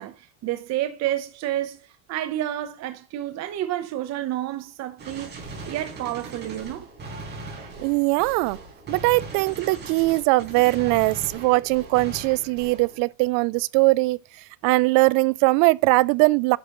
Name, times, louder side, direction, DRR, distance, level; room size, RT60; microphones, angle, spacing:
voice 1, 0.0-6.9 10.8-11.0, right 13 dB, 45° right, 0.9 m, -30 dB
Gunshot gunfire, 5.0-13.0, right 2 dB, 25° right, 4.5 m, -39 dB
voice 2, 7.8-8.6 8.9-14.2 14.6-16.6, right 23 dB, 60° right, 0.5 m, -20 dB
10.5 x 6.1 x 3.0 m
cardioid pair, 145°, 38 cm